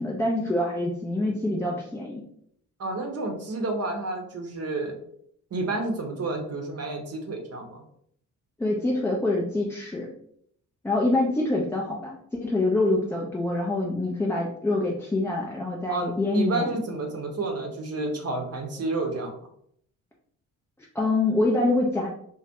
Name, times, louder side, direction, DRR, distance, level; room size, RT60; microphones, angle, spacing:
voice 1, 0.0-2.2 8.6-10.1 10.8-16.7 20.9-22.1, left 2 dB, 5° left, -3 dB, 0.3 m, -25 dB
voice 2, 2.8-5.0 5.5-7.8 15.9-19.3, right 2 dB, 40° right, 3 dB, 0.7 m, -30 dB
2.2 x 2.1 x 2.8 m, 0.68 s
hypercardioid pair, 45°, 40 cm